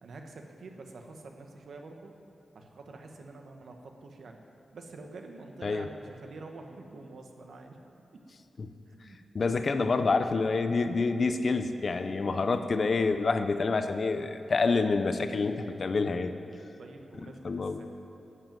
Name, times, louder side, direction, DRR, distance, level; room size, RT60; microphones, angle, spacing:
voice 1, 0.0-2.1 2.5-4.4 4.7-7.8 8.1-8.2 8.9-9.9 12.2-12.6 16.8-17.9, right 3 dB, 70° right, 3 dB, 1.2 m, -47 dB
voice 2, 9.3-16.3 17.2-17.8, left 4 dB, 45° left, 9 dB, 0.6 m, -27 dB
11.5 x 7.7 x 9.1 m, 2.8 s
wide cardioid pair, 135°, 0 cm